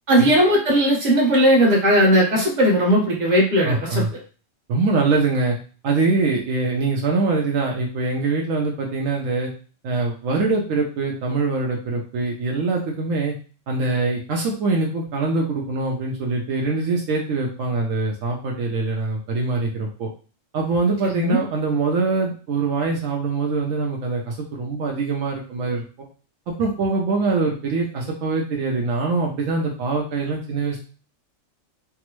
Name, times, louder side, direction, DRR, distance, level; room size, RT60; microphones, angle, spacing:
voice 1, 0.1-4.0 21.0-21.4, equal, 35° right, -3 dB, 1.2 m, -17 dB
voice 2, 3.6-4.1 4.7-5.6 5.8-9.5 9.8-13.3 13.7-20.1 20.5-25.8 26.6-30.8, right 3 dB, 75° right, 0 dB, 1.0 m, -23 dB
3.4 x 2.0 x 3.0 m, 0.37 s
omnidirectional pair, 1.4 m